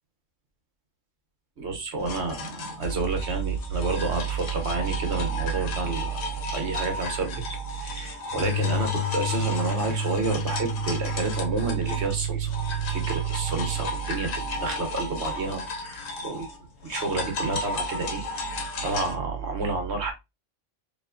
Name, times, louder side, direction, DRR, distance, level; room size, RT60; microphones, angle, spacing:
voice 1, 1.6-7.4 7.8-12.5 12.9-16.5 16.8-20.1, right 4 dB, 55° right, 1.1 m, -29 dB
sound 1, 2.0-12.2 12.5-19.1, left 3 dB, 75° left, 1.1 m, -35 dB
sound 2, 8.3-13.9, right 2 dB, 25° left, 0.5 m, -30 dB
4.6 x 2.7 x 2.5 m
omnidirectional pair, 1.4 m